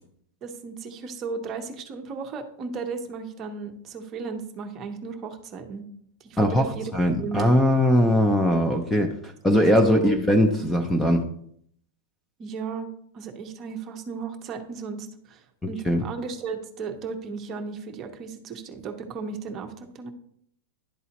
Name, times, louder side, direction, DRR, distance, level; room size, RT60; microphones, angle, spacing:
voice 1, 0.4-5.9 6.2-6.9 7.2-7.5 9.8-10.1 12.4-20.1, right 4 dB, 25° right, 5 dB, 0.8 m, -35 dB
voice 2, 6.9-11.2 15.9-16.0, equal, 5° left, 6 dB, 0.5 m, -20 dB
11.0 x 4.0 x 2.9 m, 0.67 s
supercardioid pair, 165°, 0 cm